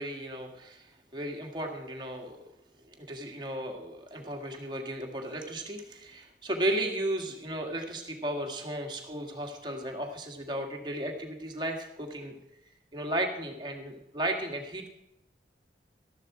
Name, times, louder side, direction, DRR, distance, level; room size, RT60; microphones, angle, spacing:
voice 1, 0.0-2.4 2.9-12.4 12.9-14.9, right 1 dB, 25° right, 2 dB, 1.9 m, -35 dB
13.5 x 11.5 x 4.8 m, 0.87 s
head